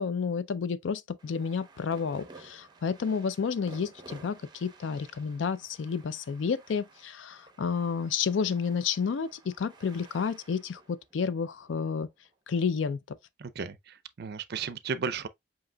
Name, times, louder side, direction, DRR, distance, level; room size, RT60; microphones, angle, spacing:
voice 1, 0.0-12.1 12.5-13.2, left 6 dB, 90° left, 0.4 m, -31 dB
sound 1, 1.2-12.7, right 3 dB, 25° right, 0.8 m, -54 dB
voice 2, 13.4-15.3, right 5 dB, 60° right, 0.4 m, -34 dB
7.6 x 2.9 x 2.2 m
head